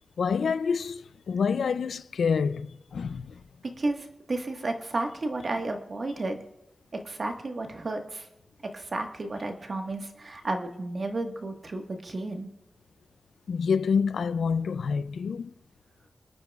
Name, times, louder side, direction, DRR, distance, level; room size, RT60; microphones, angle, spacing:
voice 1, 0.2-3.4 13.5-15.5, left 6 dB, 85° left, 0.4 m, -27 dB
voice 2, 3.8-6.4 7.0-8.3 8.7-12.5, right 2 dB, 45° right, 1.4 m, -32 dB
24.5 x 9.4 x 2.4 m
wide cardioid pair, 85°, 0 cm